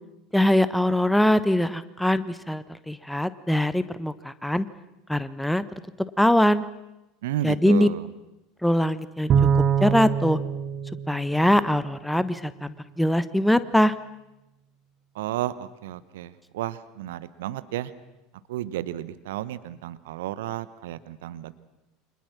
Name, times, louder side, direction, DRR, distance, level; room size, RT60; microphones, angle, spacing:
voice 1, 0.3-4.7 5.1-5.6 6.0-6.6 7.4-7.9 8.6-9.3 9.8-10.4 11.1-13.9, left 1 dB, 5° left, 14 dB, 1.2 m, -22 dB
voice 2, 7.2-8.1 15.1-17.9 18.5-21.5, right 13 dB, 65° right, 15 dB, 1.1 m, -32 dB
Bowed string instrument, 9.3-11.9, right 7 dB, 40° right, 1.7 m, -24 dB
29.0 x 26.0 x 6.1 m, 0.95 s
figure-of-eight pair, 75°, 0 cm